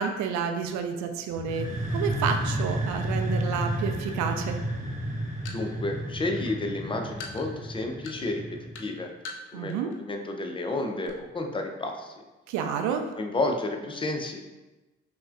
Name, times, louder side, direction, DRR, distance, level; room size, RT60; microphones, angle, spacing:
voice 1, 0.0-1.7 1.9-4.6 9.5-9.9 12.5-13.1, right 7 dB, 55° right, 6 dB, 0.5 m, -29 dB
sound 1, 1.3-9.0, right 1 dB, 20° right, 1.0 m, -31 dB
sound 2, 5.1-10.0 10.3-10.5 10.8-11.1, left 3 dB, 80° left, 0.5 m, -42 dB
voice 2, 5.5-9.1 9.5-12.1 13.2-14.4, left 2 dB, 15° left, 4 dB, 0.5 m, -31 dB
5.4 x 2.1 x 2.5 m, 1.1 s
figure-of-eight pair, 45°, 34 cm